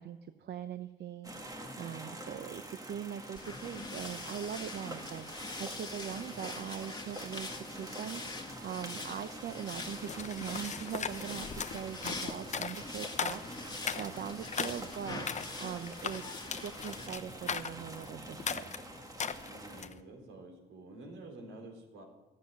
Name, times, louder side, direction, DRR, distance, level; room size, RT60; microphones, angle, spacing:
voice 1, 0.0-16.2 16.6-18.6, right 9 dB, 55° right, 10 dB, 0.7 m, -41 dB
sound 1, 1.2-19.8, right 1 dB, 15° right, 1.6 m, -47 dB
sound 2, 3.4-17.1, left 3 dB, 20° left, 2.0 m, -44 dB
sound 3, 9.8-20.0, left 6 dB, 35° left, 0.8 m, -39 dB
voice 2, 19.4-22.0, right 2 dB, 75° right, 2 dB, 3.7 m, -49 dB
13.5 x 7.6 x 9.7 m, 1.2 s
cardioid pair, 90°, 20 cm